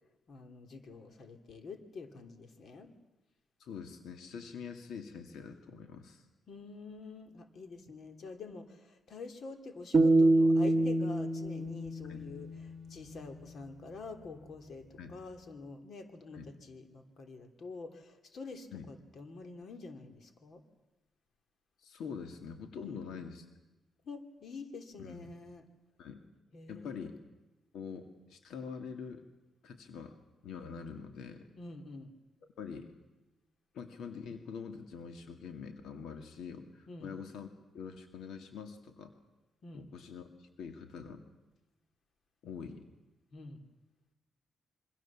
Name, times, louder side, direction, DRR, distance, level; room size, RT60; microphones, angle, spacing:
voice 1, 0.3-2.9 6.5-20.6 22.8-23.1 24.0-25.6 26.5-27.2 31.6-32.1 36.9-37.1 39.6-39.9 43.3-43.6, left 3 dB, 55° left, 6 dB, 2.9 m, -47 dB
voice 2, 3.6-6.2 12.1-12.2 15.0-15.2 16.3-16.5 18.7-18.9 21.8-23.5 25.0-25.3 26.0-26.2 26.7-27.2 27.7-29.2 29.6-30.2 30.4-31.4 32.6-32.9 33.7-37.5 37.7-39.1 39.7-41.2 42.4-42.8, left 6 dB, 90° left, 6 dB, 2.2 m, -45 dB
sound 1, 9.9-13.1, right 2 dB, 40° right, 1.1 m, -27 dB
27.0 x 24.0 x 7.4 m, 1.1 s
cardioid pair, 125°, 0 cm